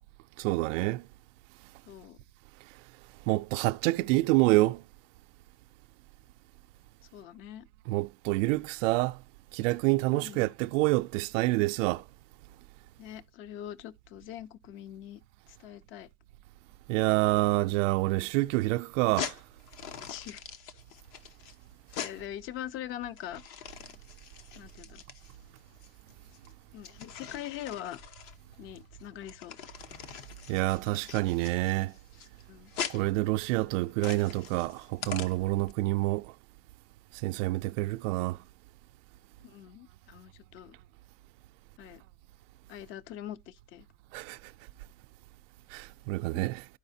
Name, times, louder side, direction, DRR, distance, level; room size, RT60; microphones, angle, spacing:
voice 1, 0.4-1.1 3.3-4.8 7.9-9.2 9.5-12.0 16.9-19.4 30.5-31.9 32.9-36.3 37.2-38.4 44.1-44.4 45.7-46.7, right 20 dB, 85° right, 0.5 m, -27 dB
voice 2, 1.9-2.2 7.1-7.7 10.1-10.5 13.0-15.2 15.5-16.1 20.0-20.4 22.0-23.4 24.5-25.0 26.5-28.0 28.6-29.6 32.5-32.7 39.4-40.8 41.8-42.0 42.7-43.9, left 11 dB, 35° left, 0.4 m, -43 dB
sound 1, 19.0-35.7, left 8 dB, 55° left, 0.9 m, -43 dB
12.5 x 4.9 x 2.6 m
cardioid pair, 155°, 37 cm